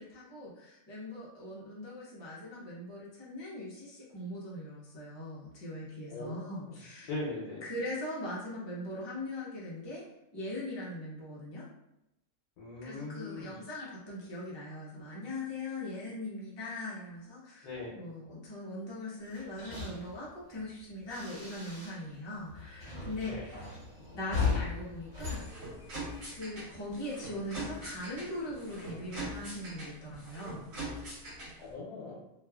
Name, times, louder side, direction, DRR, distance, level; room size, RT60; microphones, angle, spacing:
voice 1, 0.0-7.1 7.6-10.0 10.3-11.6 12.8-23.8 24.1-25.5 26.2-30.7, left 1 dB, 30° left, -6 dB, 0.5 m, -40 dB
voice 2, 6.1-6.8 7.1-7.6 12.6-13.6 17.6-18.0 23.2-23.4 31.6-32.2, left 2 dB, 85° left, -4 dB, 1.3 m, -40 dB
sound 1, 19.2-22.2 22.4-26.3, left 4 dB, 30° right, 1.2 m, -37 dB
sound 2, 25.2-31.7, right 1 dB, 60° right, 1.3 m, -43 dB
3.0 x 2.4 x 2.3 m, 0.87 s
omnidirectional pair, 1.6 m